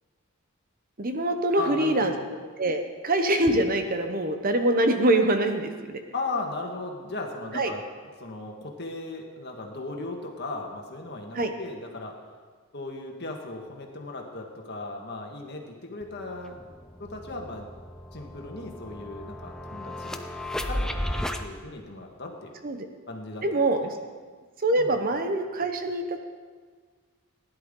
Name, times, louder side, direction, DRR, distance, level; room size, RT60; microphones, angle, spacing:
voice 1, 1.0-2.1 2.6-6.0 7.5-7.7 11.3-11.5 22.6-22.8 23.4-23.8 24.6-26.2, right 1 dB, 40° right, 6 dB, 0.9 m, -24 dB
voice 2, 1.6-2.3 6.1-7.8 8.2-12.2 12.7-16.6 17.0-17.7 18.1-20.2 20.7-21.0 21.4-22.5 23.1-23.9 24.8-24.9, left 2 dB, 50° left, 2 dB, 1.6 m, -37 dB
sound 1, 16.0-16.1 16.4-21.4, left 1 dB, 5° left, 0.5 m, -34 dB
15.5 x 10.5 x 3.8 m, 1.5 s
head